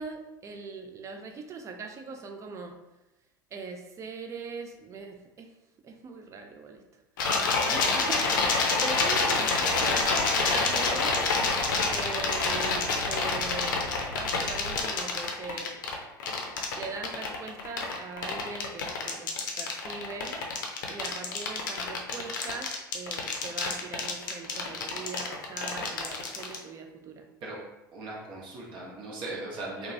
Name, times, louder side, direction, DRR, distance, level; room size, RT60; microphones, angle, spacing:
voice 1, 0.0-2.8 3.5-5.5 5.8-6.8 7.7-11.2 11.9-15.8 16.7-20.4 20.9-27.3, right 4 dB, 25° right, 4 dB, 0.4 m, -40 dB
sound 1, 7.2-26.6, left 4 dB, 70° left, 0.5 m, -27 dB
sound 2, 9.5-14.8, left 1 dB, 85° right, 0.6 m, -43 dB
voice 2, 27.9-29.9, right 2 dB, 45° right, -3 dB, 0.9 m, -38 dB
2.8 x 2.3 x 2.6 m, 0.98 s
figure-of-eight pair, 80°, 11 cm